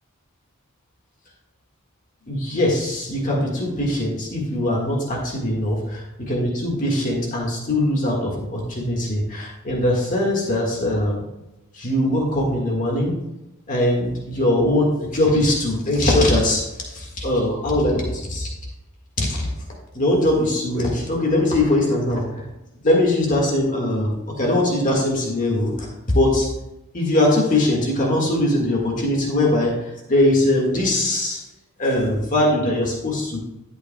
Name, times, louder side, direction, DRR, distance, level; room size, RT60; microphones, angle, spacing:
voice 1, 2.3-11.2 11.7-13.2 13.7-18.5 19.2-19.5 19.9-22.4 22.8-25.9 26.1-26.5 26.9-31.4 31.8-33.4, left 1 dB, 40° left, -1 dB, 1.7 m, -21 dB
11.5 x 8.1 x 2.2 m, 0.96 s
head